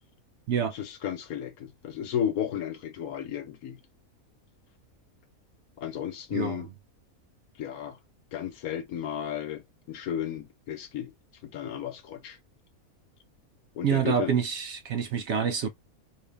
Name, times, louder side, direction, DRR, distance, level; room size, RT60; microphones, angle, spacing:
voice 1, 0.7-3.8 5.8-6.7 7.6-8.0 8.3-9.6 9.9-11.1 11.4-12.4 13.8-14.3, left 10 dB, 80° left, 1.3 m, -33 dB
voice 2, 6.3-6.6 13.8-15.7, right 7 dB, 65° right, 0.7 m, -27 dB
3.3 x 2.6 x 3.3 m
omnidirectional pair, 1.5 m